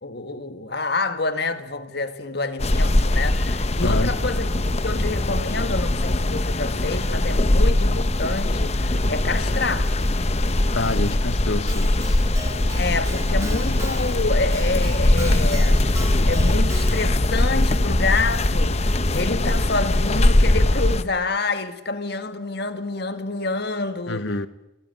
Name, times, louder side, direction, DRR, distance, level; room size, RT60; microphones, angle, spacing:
voice 1, 0.0-4.5 4.8-9.9 12.8-24.5, left 3 dB, 55° left, 1.8 m, -28 dB
sound 1, 2.6-21.0, left 1 dB, 35° left, 0.9 m, -21 dB
voice 2, 3.8-4.1 10.7-11.9 24.1-24.5, left 2 dB, 70° left, 1.1 m, -27 dB
Keyboard (musical), 11.7-17.3, right 2 dB, 15° right, 3.0 m, -38 dB
26.0 x 18.0 x 9.2 m
head